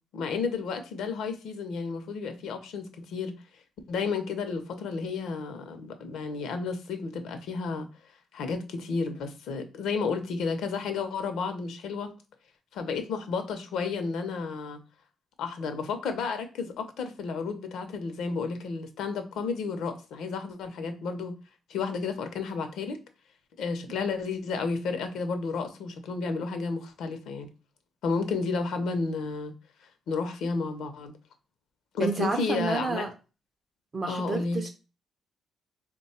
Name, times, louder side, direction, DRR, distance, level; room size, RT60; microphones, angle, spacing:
voice 1, 0.1-3.3 3.9-7.9 8.3-12.1 12.7-14.8 15.4-21.4 21.7-23.0 23.6-27.5 28.0-29.5 29.8-31.1 31.9-33.1 34.1-34.6, left 4 dB, 75° left, 8 dB, 0.6 m, -32 dB
voice 2, 32.0-33.1 33.9-34.7, right 4 dB, 30° right, 5 dB, 0.4 m, -30 dB
3.1 x 2.2 x 4.2 m, 0.32 s
cardioid pair, 145°, 0 cm